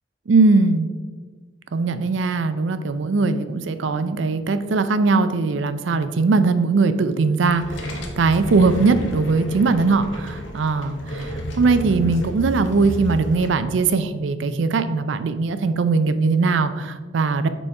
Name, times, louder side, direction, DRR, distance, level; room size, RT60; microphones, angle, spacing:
voice 1, 0.3-0.9 1.7-17.5, right 4 dB, 80° right, 11 dB, 0.4 m, -20 dB
sound 1, 7.4-13.5, equal, 90° left, 0.9 m, -31 dB
5.4 x 4.3 x 4.6 m, 1.4 s
head